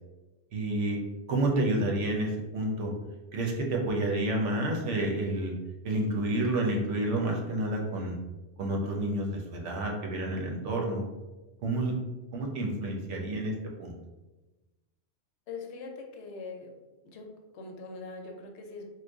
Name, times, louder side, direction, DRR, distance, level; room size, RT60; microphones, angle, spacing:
voice 1, 0.5-1.0 1.3-2.9 3.3-5.5 5.8-8.2 8.6-11.0 11.6-11.9 12.3-13.9, right 1 dB, 85° right, 0 dB, 1.0 m, -29 dB
voice 2, 15.5-16.7 17.0-18.8, left 4 dB, 75° left, 2 dB, 0.9 m, -42 dB
3.2 x 2.1 x 3.4 m, 1.1 s
omnidirectional pair, 1.2 m